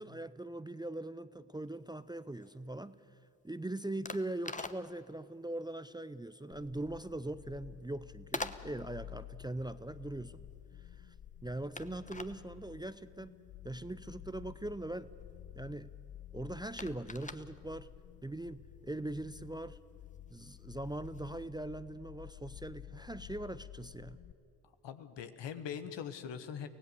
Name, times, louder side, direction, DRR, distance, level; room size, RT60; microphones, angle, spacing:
voice 1, 0.0-3.0 3.4-10.4 11.0-11.1 11.4-13.4 13.6-15.1 15.5-15.9 16.3-17.9 18.2-19.8 20.3-24.2, right 1 dB, 10° right, 14 dB, 0.6 m, -41 dB
sound 1, 1.7-21.4, left 3 dB, 15° left, 1.1 m, -49 dB
sound 2, 6.5-24.3, left 12 dB, 50° left, 0.7 m, -52 dB
voice 2, 24.8-26.7, left 8 dB, 70° left, 10 dB, 1.3 m, -42 dB
24.0 x 17.0 x 6.9 m, 2.7 s
hypercardioid pair, 45°, 44 cm